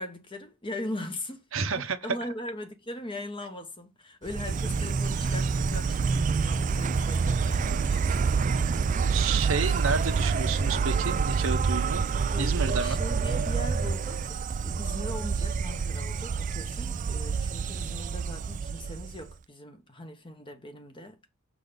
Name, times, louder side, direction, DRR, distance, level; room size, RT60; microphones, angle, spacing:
voice 1, 0.0-9.4 12.3-14.4 14.6-21.2, left 1 dB, 25° left, 1.1 m, -40 dB
voice 2, 1.5-2.0 9.0-12.0 12.4-13.0, right 5 dB, 70° right, 1.0 m, -30 dB
Insect, 4.3-19.3, right 5 dB, 35° right, 0.3 m, -27 dB
6.8 x 3.8 x 5.1 m
head